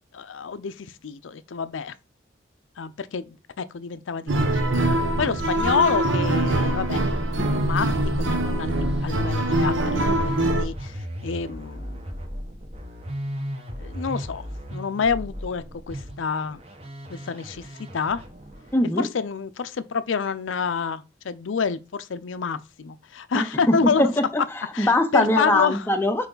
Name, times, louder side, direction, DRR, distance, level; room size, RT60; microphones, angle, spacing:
voice 1, 0.1-1.9 2.8-4.7 5.2-7.0 7.5-12.0 13.8-14.5 14.7-16.6 17.1-18.2 19.0-24.1 24.7-25.9, left 5 dB, 85° left, 0.5 m, -28 dB
sound 1, 4.3-10.6, right 1 dB, 80° right, 1.1 m, -23 dB
Musical instrument, 7.1-18.9, equal, 30° right, 1.1 m, -35 dB
voice 2, 18.7-19.1 23.3-26.3, left 1 dB, 10° left, 0.6 m, -22 dB
5.7 x 4.8 x 3.9 m
head